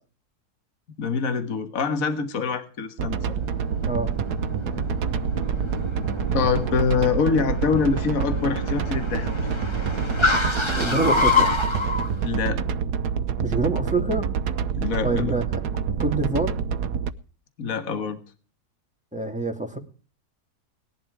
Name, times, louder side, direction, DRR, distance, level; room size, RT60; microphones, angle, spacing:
voice 1, 1.0-3.4 6.3-9.3 12.2-12.6 14.8-15.4 17.6-18.2, left 5 dB, 60° left, 9 dB, 1.8 m, -25 dB
sound 1, 3.0-17.1, right 6 dB, 85° right, 1.5 m, -27 dB
Car, 3.2-12.1, left 3 dB, 20° left, 1.6 m, -28 dB
voice 2, 10.7-11.5 13.4-14.3 15.0-15.6 16.0-16.5 19.1-19.8, right 2 dB, 5° right, 3 dB, 2.5 m, -26 dB
19.5 x 11.5 x 4.8 m, 0.38 s
omnidirectional pair, 1.7 m